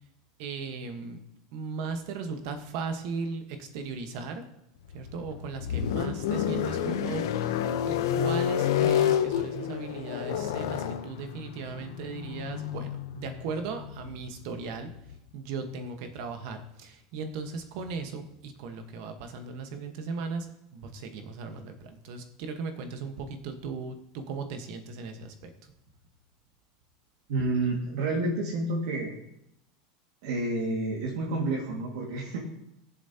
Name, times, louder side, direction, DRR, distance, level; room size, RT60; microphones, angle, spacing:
voice 1, 0.4-1.2 1.5-4.4 4.9-7.6 7.9-20.5 20.7-25.7, right 4 dB, 50° right, 7 dB, 1.3 m, -37 dB
sound 1, 4.9-15.1, left 9 dB, 85° left, 0.8 m, -30 dB
voice 2, 27.3-29.1 30.2-32.4, right 2 dB, 65° right, -3 dB, 1.9 m, -29 dB
19.5 x 7.2 x 2.9 m, 0.81 s
supercardioid pair, 180°, 2 cm